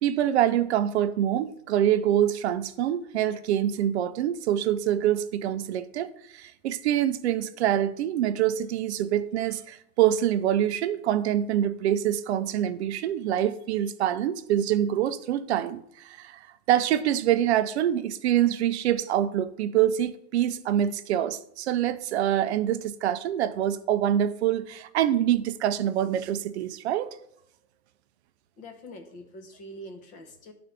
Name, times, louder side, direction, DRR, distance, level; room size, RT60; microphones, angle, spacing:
voice 1, 0.0-16.4 16.7-27.2, right 11 dB, 50° right, 0.4 m, -25 dB
voice 2, 28.6-30.5, equal, 20° left, 0.6 m, -44 dB
11.5 x 3.9 x 3.3 m
supercardioid pair, 155°, 46 cm